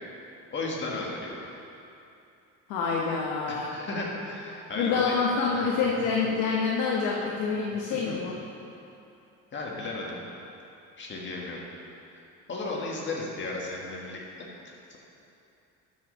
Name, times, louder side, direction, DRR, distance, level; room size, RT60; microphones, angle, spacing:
voice 1, 0.5-1.4 3.5-5.1 5.4-5.7 7.9-8.3 9.5-10.2 11.0-11.6 12.5-14.2 14.6-15.0, left 3 dB, 35° left, -3 dB, 1.7 m, -34 dB
voice 2, 2.7-3.7 4.8-8.4, left 5 dB, 90° left, -3 dB, 1.0 m, -27 dB
12.0 x 5.3 x 4.0 m, 2.8 s
cardioid pair, 115°, 31 cm